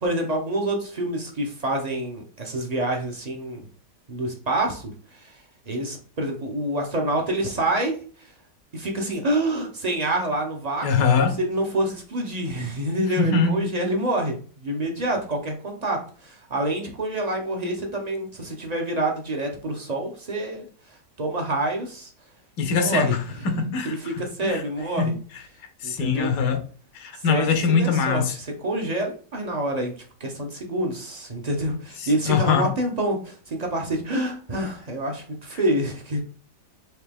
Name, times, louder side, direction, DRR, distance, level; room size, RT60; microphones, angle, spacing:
voice 1, 0.0-3.6 4.1-4.9 5.7-7.9 8.7-10.9 11.1-20.7 21.2-22.1 22.7-23.2 23.8-25.1 25.8-26.3 27.3-27.5 27.8-29.9 30.2-36.2, right 1 dB, 45° right, 0.5 m, -27 dB
voice 2, 10.8-11.4 13.2-13.6 22.6-24.1 24.4-24.6 25.0-25.1 25.8-26.6 26.9-28.3 32.0-32.7, left 5 dB, 85° left, 1.4 m, -22 dB
4.6 x 2.9 x 3.4 m
omnidirectional pair, 1.8 m